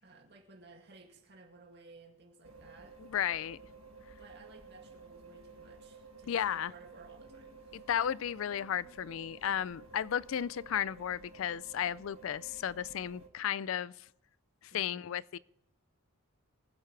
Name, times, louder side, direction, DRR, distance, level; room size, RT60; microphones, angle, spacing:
voice 1, 0.0-3.0 4.0-7.8 14.7-15.0, right 3 dB, 50° right, 2.2 m, -57 dB
sound 1, 2.4-13.3, right 4 dB, 80° right, 1.5 m, -53 dB
voice 2, 3.1-3.6 6.3-6.7 7.7-13.9 14.7-15.4, left 9 dB, 70° left, 0.4 m, -34 dB
24.0 x 8.3 x 3.3 m
head